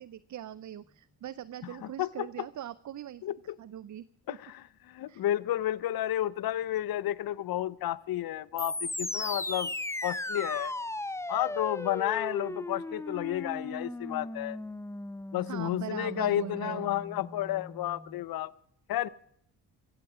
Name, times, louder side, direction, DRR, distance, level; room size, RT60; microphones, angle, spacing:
voice 1, 0.0-3.2 3.6-4.4 5.1-5.2 15.5-16.9, right 11 dB, 45° right, 0.5 m, -41 dB
voice 2, 1.8-2.3 3.2-3.6 4.3-9.7 10.0-10.7 11.3-14.6 15.3-18.5 18.9-19.1, left 13 dB, 60° left, 0.7 m, -31 dB
sound 1, 8.6-18.2, left 2 dB, 5° left, 0.6 m, -37 dB
16.0 x 15.5 x 4.9 m
cardioid pair, 65°, 41 cm